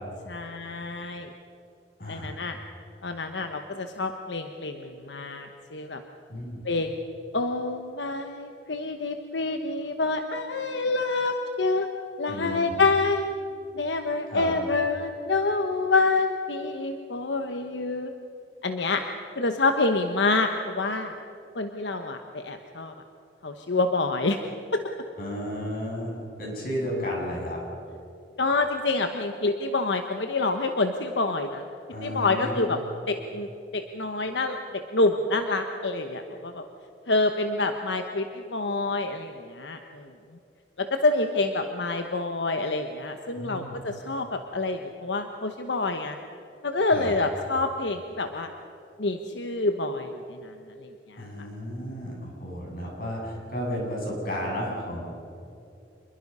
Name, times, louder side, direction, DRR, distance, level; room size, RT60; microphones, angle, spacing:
voice 1, 0.3-1.3 2.1-2.6 3.0-6.0 6.6-6.9 7.3-11.9 12.2-13.3 13.7-18.1 18.6-19.0 19.4-21.1 21.5-22.9 23.4-24.4 24.7-24.8 28.4-31.7 32.0-32.8 33.1-34.6 34.9-36.6 37.1-40.1 40.8-46.2 46.6-48.5 49.0-51.5, left 3 dB, 85° left, 6 dB, 1.1 m, -27 dB
voice 2, 2.0-2.3 6.3-6.6 12.3-12.7 14.3-14.5 25.2-27.6 31.9-32.7 43.3-43.8 46.9-47.1 51.2-55.0, equal, 55° left, -2 dB, 7.8 m, -33 dB
27.0 x 22.0 x 5.6 m, 2.7 s
head